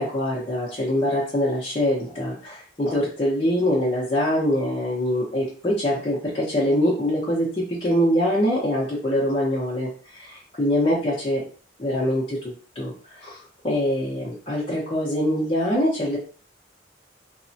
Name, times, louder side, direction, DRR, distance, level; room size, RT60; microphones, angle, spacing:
voice 1, 0.0-11.5 11.8-16.2, equal, 30° left, -7 dB, 0.8 m, -24 dB
3.4 x 2.1 x 2.7 m, 0.40 s
head